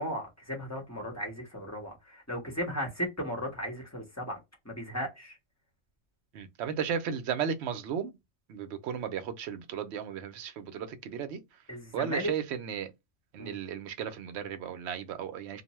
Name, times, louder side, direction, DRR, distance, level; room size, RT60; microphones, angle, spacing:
voice 1, 0.0-4.4 4.6-5.4 11.7-12.3 13.4-13.5, equal, 15° left, 0.9 m, -36 dB
voice 2, 6.3-8.1 8.5-11.4 11.9-12.9 13.3-15.6, right 8 dB, 65° right, 0.8 m, -34 dB
2.6 x 2.2 x 2.9 m
omnidirectional pair, 1.3 m